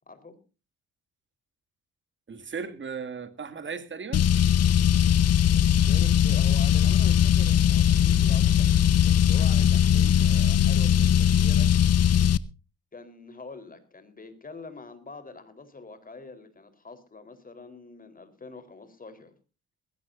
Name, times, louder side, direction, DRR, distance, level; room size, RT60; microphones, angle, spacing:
voice 1, 0.1-0.4 5.6-11.7 12.9-19.3, left 3 dB, 30° left, 4.0 m, -45 dB
voice 2, 2.3-4.3, right 5 dB, 40° right, 2.4 m, -36 dB
Car, 4.1-12.4, left 9 dB, 55° left, 0.8 m, -20 dB
20.0 x 16.0 x 2.6 m
cardioid pair, 90°, 30 cm